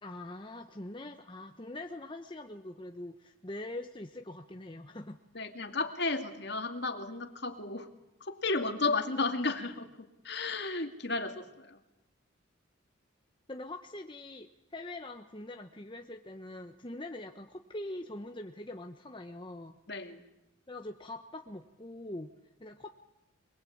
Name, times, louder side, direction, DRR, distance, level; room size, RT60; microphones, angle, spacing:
voice 1, 0.0-5.5 13.5-19.8 20.7-22.3 22.6-22.9, left 1 dB, 25° left, 5 dB, 1.1 m, -43 dB
voice 2, 5.3-7.9 8.2-11.8 19.9-20.3, left 3 dB, 55° left, 6 dB, 2.4 m, -33 dB
26.5 x 21.5 x 8.7 m, 0.94 s
head